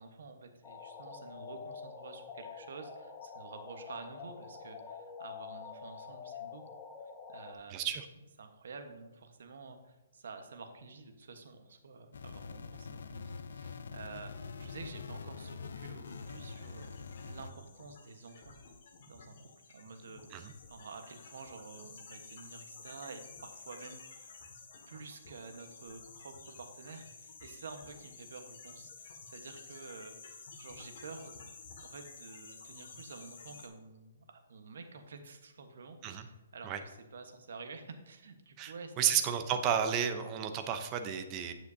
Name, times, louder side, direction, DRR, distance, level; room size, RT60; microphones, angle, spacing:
voice 1, 0.0-6.6 7.3-7.9 8.4-18.5 19.1-19.4 19.7-24.3 24.9-31.4 31.8-39.5, right 4 dB, 70° right, 6 dB, 1.2 m, -50 dB
sound 1, 0.6-7.5, left 6 dB, 15° left, 0.9 m, -47 dB
voice 2, 7.7-8.1 20.3-20.5 36.0-36.2 36.6-36.8 38.6-41.5, right 8 dB, 25° right, 7 dB, 0.7 m, -32 dB
sound 2, 12.1-17.5, left 5 dB, 75° left, 0.6 m, -44 dB
sound 3, 16.0-33.7, left 4 dB, 50° left, 1.9 m, -52 dB
9.2 x 7.9 x 2.8 m, 1.0 s
hypercardioid pair, 160°, 0 cm